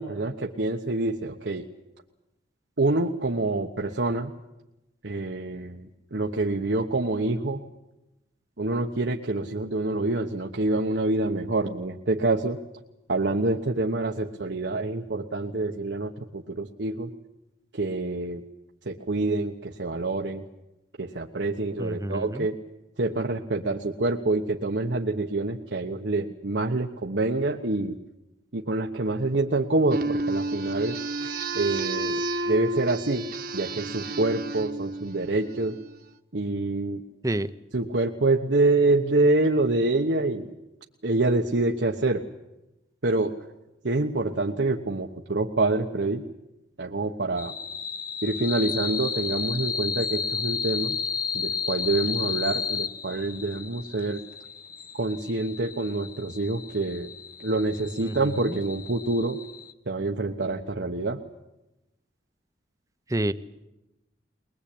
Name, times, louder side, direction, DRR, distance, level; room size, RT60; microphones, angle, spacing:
voice 1, 0.0-1.7 2.8-4.3 5.0-7.6 8.6-12.6 13.1-17.1 17.7-18.4 18.9-20.5 21.0-22.6 23.0-28.0 28.5-31.0 31.5-33.3 33.5-35.8 36.3-37.0 37.7-40.5 41.0-42.2 43.0-43.3 43.8-46.2 46.8-47.5 48.2-51.0 51.3-54.2 55.0-57.1 57.4-59.4 59.9-61.2, right 2 dB, 80° right, 1 dB, 1.2 m, -26 dB
voice 2, 21.8-22.5 37.2-37.5 58.0-58.6 63.1-63.3, right 1 dB, 20° right, 13 dB, 0.7 m, -29 dB
sound 1, 29.9-35.9, right 2 dB, 55° right, 1.3 m, -31 dB
sound 2, 47.4-59.7, left 6 dB, 55° left, 1.1 m, -33 dB
22.0 x 21.0 x 8.6 m, 0.95 s
head